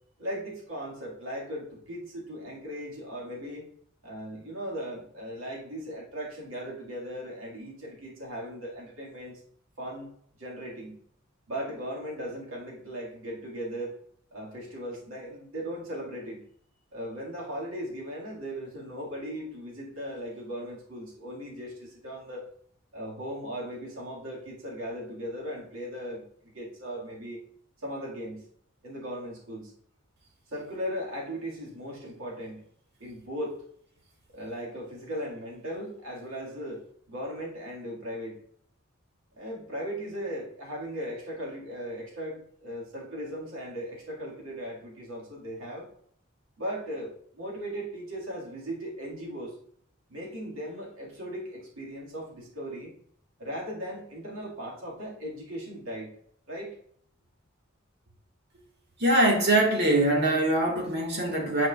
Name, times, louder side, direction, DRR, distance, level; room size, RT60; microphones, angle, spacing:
voice 1, 0.2-3.7 4.0-9.4 9.8-10.1 10.4-11.0 11.5-14.0 14.3-16.4 16.9-22.5 22.9-27.4 27.8-28.5 28.8-29.7 30.5-32.7 33.0-33.6 34.3-38.4 39.3-45.9 46.6-49.6 50.1-52.9 53.4-56.2 56.5-56.8 58.5-58.6, equal, 85° right, -3 dB, 2.1 m, -38 dB
voice 2, 59.0-61.7, right 1 dB, 55° right, 0 dB, 1.6 m, -23 dB
9.4 x 4.8 x 2.4 m, 0.66 s
head